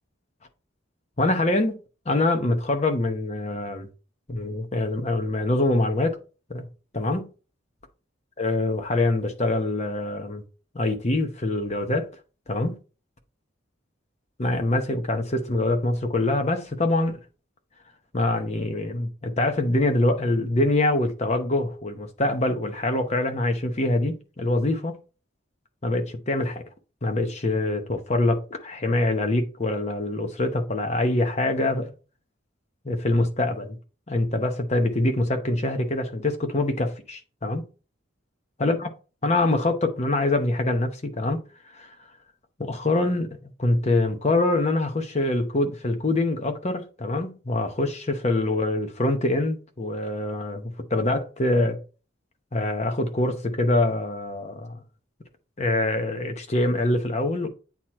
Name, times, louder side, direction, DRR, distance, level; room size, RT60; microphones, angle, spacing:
voice 1, 1.2-1.8 2.1-3.9 4.3-6.2 6.5-6.7 6.9-7.3 8.4-10.4 10.7-12.1 12.5-12.8 14.4-17.2 18.1-25.0 25.8-26.6 27.0-31.9 32.8-33.8 34.1-37.6 38.6-38.9 39.2-41.4 41.7-41.9 42.6-51.8 52.5-54.8 55.6-57.5, left 2 dB, 35° left, 0.9 m, -24 dB
8.2 x 2.9 x 4.5 m
head